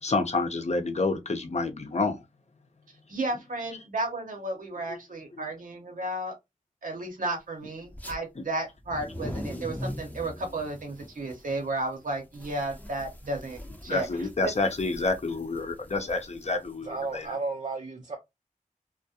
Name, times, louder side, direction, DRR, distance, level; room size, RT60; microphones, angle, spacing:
voice 1, 0.0-2.2 4.9-5.0 5.4-5.5 8.4-8.5 13.9-17.3, left 3 dB, 55° left, 0.6 m, -28 dB
voice 2, 3.1-6.3 6.8-14.5, right 2 dB, 90° right, 0.7 m, -33 dB
sound 1, 7.9-8.2 8.7-17.3, equal, 10° left, 0.6 m, -41 dB
voice 3, 16.8-18.2, right 3 dB, 55° right, 0.5 m, -33 dB
2.3 x 2.0 x 2.7 m
wide cardioid pair, 45°, 13 cm